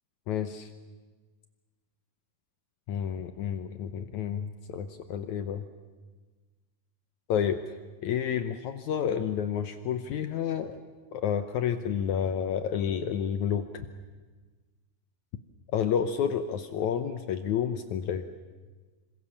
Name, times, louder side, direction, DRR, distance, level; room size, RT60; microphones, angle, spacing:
voice 1, 0.3-0.7 2.9-5.6 7.3-7.6 8.0-10.8 11.1-13.9 15.7-18.3, left 8 dB, 70° left, 10 dB, 1.9 m, -30 dB
26.5 x 25.5 x 7.1 m, 1.3 s
omnidirectional pair, 4.1 m